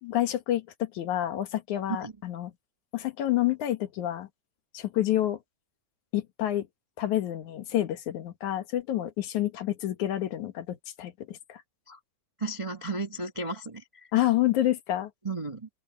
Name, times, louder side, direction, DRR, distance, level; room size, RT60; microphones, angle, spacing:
voice 1, 0.0-2.5 2.9-4.3 4.7-5.4 6.1-6.7 7.0-11.6 14.1-15.1, left 13 dB, 75° left, 2.8 m, -28 dB
voice 2, 12.4-14.1 15.2-15.7, right 3 dB, 40° right, 0.4 m, -34 dB
open air
omnidirectional pair, 3.5 m